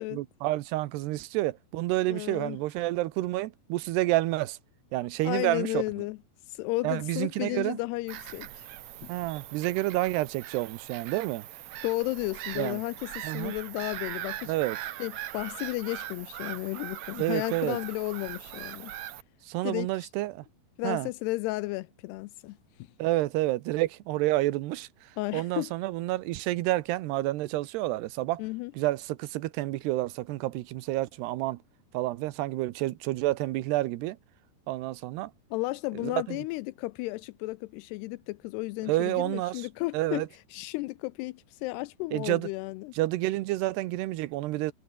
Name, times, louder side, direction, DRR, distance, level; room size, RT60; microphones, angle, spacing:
voice 1, 0.1-4.6 4.9-5.8 6.8-7.8 9.1-11.5 12.6-12.8 13.2-13.5 14.5-14.8 17.2-17.8 19.5-20.4 20.8-21.1 23.0-28.4 28.7-31.6 31.9-34.2 34.7-35.3 35.9-36.4 38.9-39.7 39.9-40.3 42.1-42.5 43.0-44.7, right 17 dB, 85° right, 3.0 m, -29 dB
voice 2, 2.1-2.6 5.2-6.2 6.5-8.7 9.0-9.1 11.8-14.5 15.0-18.9 19.6-20.1 20.8-22.6 25.2-25.7 28.4-28.7 35.5-40.2 40.5-42.9, left 21 dB, 85° left, 2.7 m, -33 dB
Bird vocalization bird call bird song / Gull seagull, 8.1-19.2, right 13 dB, 65° right, 1.8 m, -41 dB
omnidirectional pair, 4.7 m